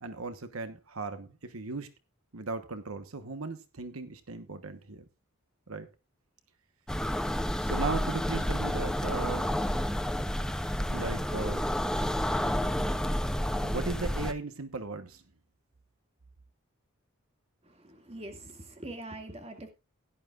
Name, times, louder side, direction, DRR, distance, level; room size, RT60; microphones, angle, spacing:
voice 1, 0.0-1.9 2.3-5.0 5.7-5.9 7.6-9.6 10.9-11.7 12.1-12.7 13.6-15.2, right 3 dB, 85° right, 1.2 m, -37 dB
sound 1, 6.9-14.3, equal, 5° left, 0.5 m, -30 dB
voice 2, 17.6-19.7, right 1 dB, 30° right, 2.1 m, -43 dB
16.5 x 11.5 x 2.4 m
head